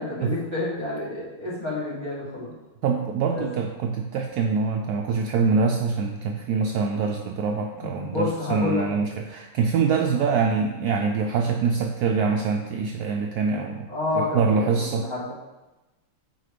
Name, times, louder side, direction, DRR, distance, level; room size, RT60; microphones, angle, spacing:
voice 1, 0.0-2.5 3.3-3.5 7.7-8.9 13.9-15.3, left 2 dB, 15° left, -8 dB, 2.0 m, -29 dB
voice 2, 2.8-13.9 14.1-15.1, right 5 dB, 80° right, 2 dB, 0.8 m, -24 dB
6.7 x 4.5 x 5.0 m, 1.1 s
omnidirectional pair, 2.2 m